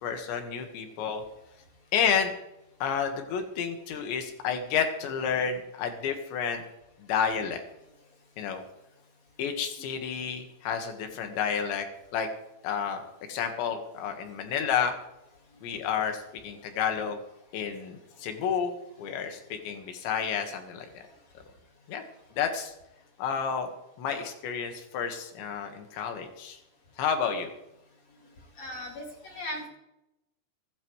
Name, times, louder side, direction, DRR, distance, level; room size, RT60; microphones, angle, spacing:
voice 1, 0.0-1.2 1.9-2.3 2.8-6.6 7.1-7.6 8.4-8.6 9.4-11.9 12.1-12.3 12.6-13.0 13.3-14.9 15.6-17.2 17.5-18.7 19.0-20.9 21.9-22.0 22.4-22.7 23.2-23.7 24.0-26.6 27.0-27.5, left 7 dB, 80° left, 5 dB, 3.9 m, -30 dB
voice 2, 28.6-29.7, left 1 dB, 45° left, 0 dB, 3.0 m, -38 dB
24.0 x 12.0 x 3.2 m, 0.87 s
omnidirectional pair, 5.2 m